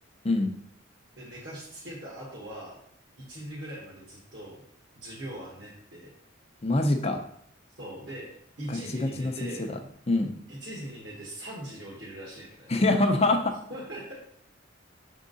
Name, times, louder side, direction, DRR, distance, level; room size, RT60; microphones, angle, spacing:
voice 1, 1.2-2.8 3.2-4.6 4.9-6.1 7.8-8.3 8.6-9.7 10.5-12.7 13.7-14.1, right 1 dB, 60° right, -6 dB, 1.5 m, -41 dB
voice 2, 6.6-7.2 8.7-9.7 10.1-10.3 12.7-13.5, left 2 dB, 30° left, 5 dB, 0.6 m, -25 dB
6.5 x 3.7 x 3.9 m, 0.67 s
head